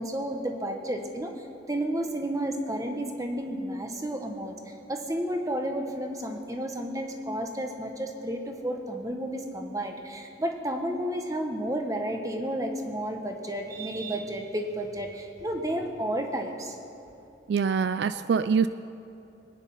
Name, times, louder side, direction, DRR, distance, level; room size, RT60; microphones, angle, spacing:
voice 1, 0.0-16.8, right 1 dB, 20° right, 4 dB, 1.3 m, -32 dB
voice 2, 17.5-18.7, right 6 dB, 60° right, 13 dB, 0.3 m, -24 dB
22.5 x 9.9 x 5.7 m, 2.8 s
head